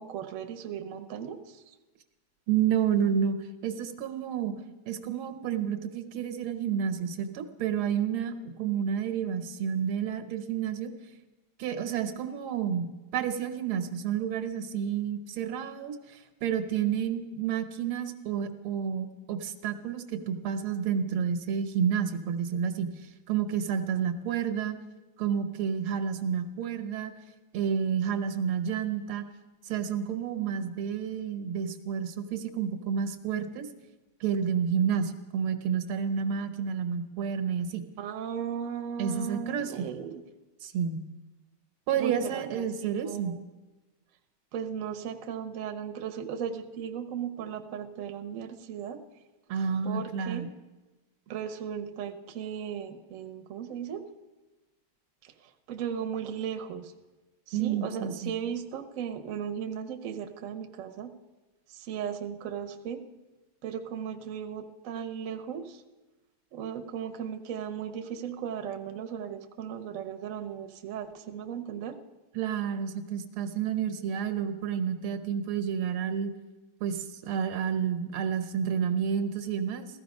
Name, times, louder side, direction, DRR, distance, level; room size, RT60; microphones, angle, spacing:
voice 1, 0.0-1.6 38.0-40.2 42.0-43.4 44.5-49.0 49.8-50.4 51.3-54.0 55.2-55.3 55.7-56.9 57.5-61.1 61.7-63.0 63.6-65.8 66.5-72.0, right 8 dB, 55° right, 6 dB, 1.0 m, -36 dB
voice 2, 2.5-4.5 4.9-10.9 11.6-22.9 23.3-24.8 25.2-27.1 27.5-29.3 29.7-33.7 34.2-37.8 39.0-39.7 40.6-41.0 41.9-43.4 49.5-50.5 57.5-58.3 72.4-76.3 76.8-79.9, right 7 dB, 85° right, 8 dB, 1.9 m, -30 dB
15.0 x 14.0 x 5.3 m, 1.2 s
omnidirectional pair, 2.3 m